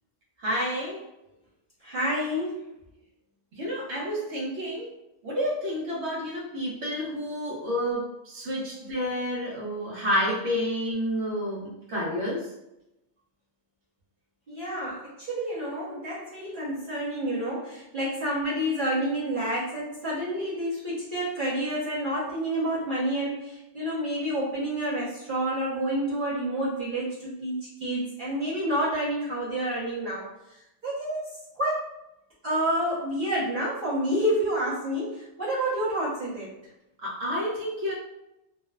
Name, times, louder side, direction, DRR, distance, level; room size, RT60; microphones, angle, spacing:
voice 1, 0.4-1.0 3.5-4.9 5.2-12.5 37.0-37.9, equal, 65° right, -4 dB, 1.0 m, -30 dB
voice 2, 1.8-2.7 14.5-30.3 30.8-31.9 32.4-36.5, right 1 dB, 45° right, -10 dB, 0.9 m, -29 dB
3.2 x 2.0 x 2.2 m, 0.89 s
omnidirectional pair, 1.3 m